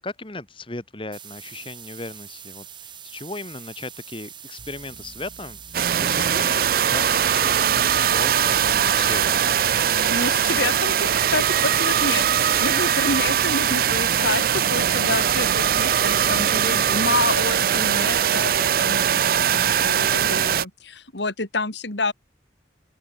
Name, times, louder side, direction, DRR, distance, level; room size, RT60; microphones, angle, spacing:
voice 1, 0.0-5.6 6.0-9.4 16.9-17.1, left 2 dB, 30° left, 1.7 m, -36 dB
sound 1, 1.1-11.1, right 9 dB, 25° right, 4.5 m, -43 dB
sound 2, 4.6-18.6, equal, 70° right, 6.0 m, -45 dB
sound 3, 5.7-20.7, right 9 dB, 50° right, 0.4 m, -21 dB
voice 2, 10.1-19.2 19.5-22.1, left 3 dB, 75° left, 3.1 m, -28 dB
open air
head